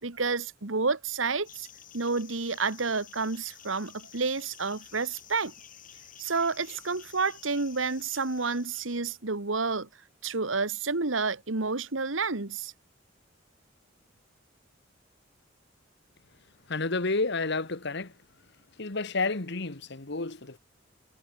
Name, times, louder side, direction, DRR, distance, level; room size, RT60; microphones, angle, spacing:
voice 1, 0.0-1.7 1.9-5.5 6.2-9.9 10.2-12.7, right 4 dB, 85° right, 1.7 m, -30 dB
sound 1, 1.4-9.0, left 10 dB, 45° left, 2.8 m, -51 dB
voice 2, 16.7-18.1 18.8-20.6, left 3 dB, 60° left, 1.7 m, -30 dB
head